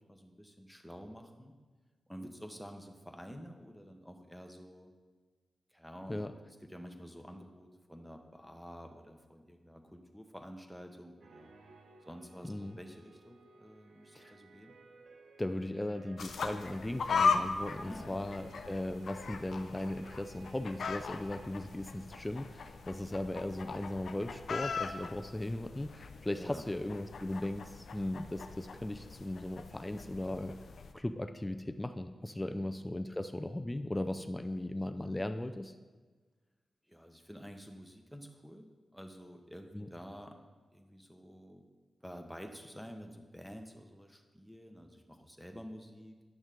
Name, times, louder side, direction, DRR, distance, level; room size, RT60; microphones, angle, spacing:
voice 1, 0.0-1.6 2.1-4.9 5.7-6.2 6.6-11.5 12.0-14.8 17.8-18.1 26.3-26.7 32.4-32.7 36.9-40.4 40.7-41.7 42.0-46.2, equal, ahead, 3 dB, 1.2 m, -49 dB
sound 1, 11.2-24.5 24.8-25.0, right 4 dB, 75° right, 0.8 m, -59 dB
voice 2, 12.4-12.8 14.1-14.3 15.4-30.6 30.9-35.7 39.7-39.9, left 1 dB, 20° left, 8 dB, 0.5 m, -37 dB
sound 2, 16.2-30.9, left 5 dB, 75° left, 0.5 m, -38 dB
10.5 x 6.2 x 3.8 m, 1.4 s
supercardioid pair, 40°, 0 cm